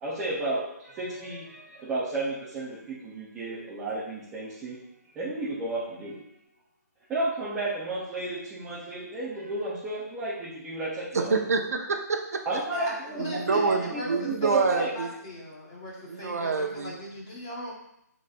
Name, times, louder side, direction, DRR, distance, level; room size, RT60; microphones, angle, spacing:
voice 1, 0.0-4.8 5.2-6.2 7.1-11.4 12.4-14.9, right 2 dB, 5° right, -9 dB, 0.3 m, -32 dB
voice 2, 11.1-12.4 13.2-15.1 16.1-17.0, right 4 dB, 60° right, 4 dB, 0.8 m, -27 dB
voice 3, 12.5-17.7, left 1 dB, 15° left, -3 dB, 1.0 m, -39 dB
11.0 x 4.2 x 2.3 m, 0.79 s
hypercardioid pair, 180°, 9 cm